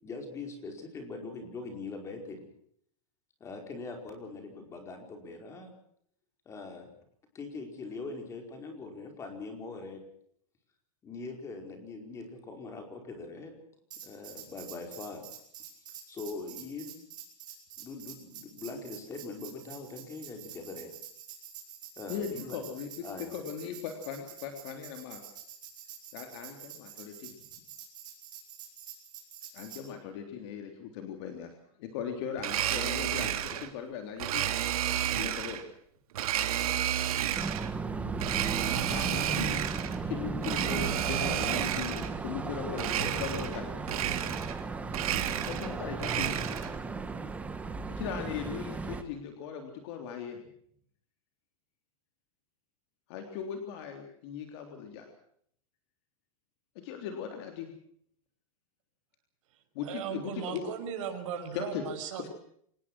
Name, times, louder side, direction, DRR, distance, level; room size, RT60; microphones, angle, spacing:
voice 1, 0.0-2.5 3.4-5.7 6.4-6.9 7.3-10.0 11.0-13.5 14.0-15.2 16.1-17.0 17.8-20.9 22.0-22.6 23.0-23.3, left 3 dB, 15° left, 4 dB, 4.9 m, -42 dB
Tambourine, 13.9-29.8, right 9 dB, 25° right, 7.2 m, -47 dB
voice 2, 22.1-23.1 23.3-25.2 26.1-27.3 29.5-31.5 31.8-34.5 35.1-35.6 38.9-39.6 40.1-43.7 45.5-46.4 47.9-50.4 53.1-55.1 56.8-57.7 59.8-60.7 61.5-62.3, left 7 dB, 45° left, 5 dB, 3.5 m, -38 dB
Domestic sounds home sounds, 32.4-33.7 34.2-35.6 36.1-37.7 38.2-40.0 40.4-42.1 42.7-43.6 43.8-44.6 44.9-46.8, right 11 dB, 85° right, 3.0 m, -31 dB
sound 1, 37.4-49.0, right 4 dB, 10° right, 1.4 m, -36 dB
voice 3, 59.8-62.3, right 8 dB, 60° right, 5 dB, 5.8 m, -37 dB
26.0 x 20.0 x 6.2 m, 0.65 s
supercardioid pair, 170°, 18 cm